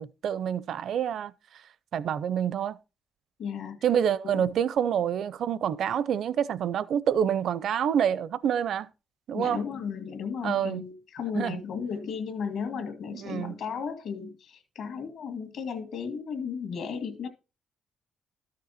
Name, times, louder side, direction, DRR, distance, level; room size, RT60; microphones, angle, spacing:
voice 1, 0.0-1.6 1.9-2.8 3.8-8.9 9.3-9.6 10.4-10.8 11.3-11.6 13.1-13.5, right 8 dB, 55° right, 0.5 m, -27 dB
voice 2, 3.4-3.8 4.2-4.4 9.3-17.3, left 6 dB, 60° left, 1.9 m, -34 dB
12.5 x 6.6 x 4.1 m
cardioid pair, 160°, 0 cm